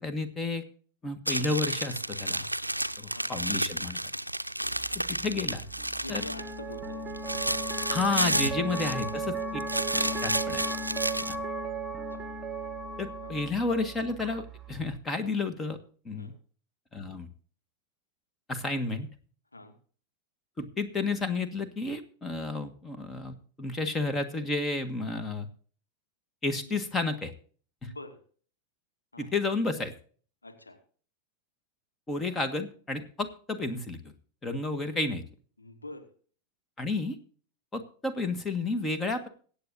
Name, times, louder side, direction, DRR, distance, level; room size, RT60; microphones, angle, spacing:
voice 1, 0.0-0.6 1.0-2.4 3.0-4.0 5.2-5.7 6.1-6.2 7.9-9.0 9.5-9.6 10.2-10.6 13.0-15.8 16.0-16.3 16.9-17.3 18.5-19.1 20.6-25.5 26.4-27.3 27.8-27.9 29.2-29.9 32.1-34.0 34.4-35.2 36.8-37.2 37.7-39.3, left 3 dB, 15° left, 10 dB, 1.6 m, -31 dB
sound 1, 1.3-6.5 6.9-9.3 9.6-11.4, right 1 dB, 85° right, 0.5 m, -31 dB
voice 2, 4.4-4.8 6.0-7.4 8.7-8.9 9.7-10.2 10.9-11.2 12.0-12.3 13.2-13.4 16.2-16.4 19.5-19.8 26.6-26.8 27.8-28.2 29.1-29.4 30.4-30.8 32.3-32.5 35.6-36.1, left 2 dB, 80° left, 6 dB, 1.7 m, -46 dB
sound 2, 4.6-15.0, right 2 dB, 15° right, 1.4 m, -36 dB
23.0 x 8.5 x 2.6 m, 0.43 s
figure-of-eight pair, 90°, 0 cm